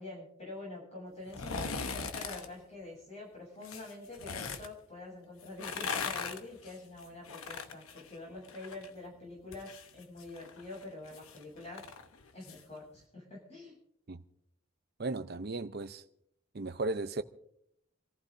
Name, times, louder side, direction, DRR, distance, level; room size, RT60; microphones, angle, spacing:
voice 1, 0.0-11.9 12.3-13.8, left 2 dB, 30° left, 7.7 m, -46 dB
sound 1, 1.3-2.5 3.6-4.7 5.4-8.9 9.2-12.6 13.0-13.1, left 5 dB, 80° left, 1.0 m, -40 dB
voice 2, 15.0-16.0 16.5-17.2, right 3 dB, 45° right, 0.6 m, -35 dB
28.0 x 15.0 x 2.7 m
head